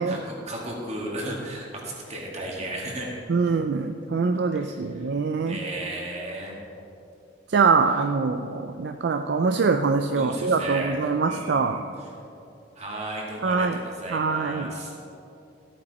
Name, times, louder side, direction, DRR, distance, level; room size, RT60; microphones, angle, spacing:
voice 1, 0.0-3.1 4.6-5.1 5.5-6.5 10.1-11.8 12.8-15.0, right 1 dB, 35° right, -2 dB, 2.1 m, -35 dB
voice 2, 3.3-5.6 7.5-11.9 13.4-13.8 14.1-14.7, right 4 dB, 60° right, 6 dB, 0.4 m, -24 dB
14.0 x 8.7 x 4.2 m, 2.7 s
head